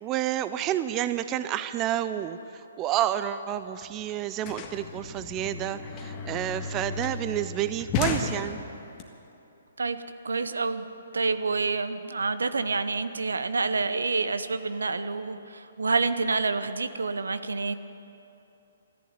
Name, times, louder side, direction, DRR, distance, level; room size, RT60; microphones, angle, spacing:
voice 1, 0.0-8.6, right 12 dB, 25° right, 12 dB, 0.5 m, -30 dB
sound 1, 3.5-3.6 3.8-9.0, left 5 dB, 30° left, 1.6 m, -34 dB
voice 2, 9.8-10.9 11.1-17.8, right 4 dB, 80° right, 12 dB, 0.8 m, -28 dB
14.0 x 11.0 x 9.5 m, 2.9 s
figure-of-eight pair, 135°, 0 cm